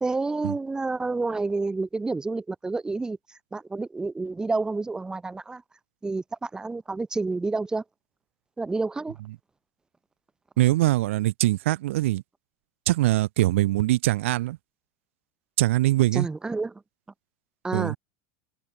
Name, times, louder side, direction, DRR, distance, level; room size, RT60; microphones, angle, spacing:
voice 1, 0.0-5.6 6.0-7.8 8.6-9.2 16.1-16.8 17.6-18.0, right 3 dB, 10° right, 0.6 m, -29 dB
voice 2, 10.6-12.2 12.9-14.6 15.6-16.3 17.7-18.0, right 16 dB, 85° right, 0.8 m, -22 dB
supercardioid pair, 120°, 7 cm